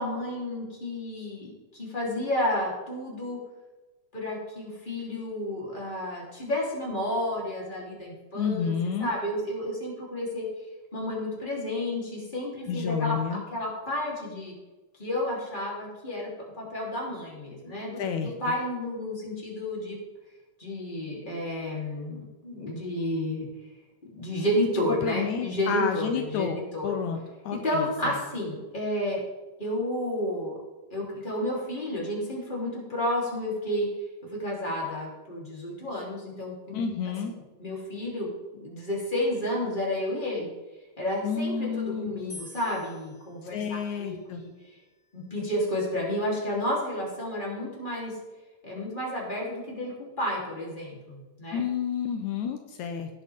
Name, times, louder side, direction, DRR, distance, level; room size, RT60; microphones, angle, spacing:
voice 1, 0.0-3.4 4.1-8.7 9.0-10.5 10.9-14.5 15.0-16.3 16.6-20.0 20.6-23.5 24.2-26.5 26.7-27.0 27.6-29.2 29.6-30.6 30.9-33.9 34.4-36.8 37.6-38.3 38.5-40.5 41.0-44.5 45.1-48.1 48.6-51.6, left 1 dB, 15° left, -4 dB, 3.6 m, -31 dB
voice 2, 8.4-9.1 12.7-13.4 18.0-18.3 25.0-26.6 26.8-27.2 27.4-28.1 36.7-37.3 41.2-42.2 43.5-44.4 51.5-53.2, left 7 dB, 80° left, 5 dB, 2.2 m, -30 dB
sound 1, 42.3-45.5, left 1 dB, 30° left, 2.1 m, -50 dB
17.5 x 8.2 x 3.7 m, 1.2 s
omnidirectional pair, 3.3 m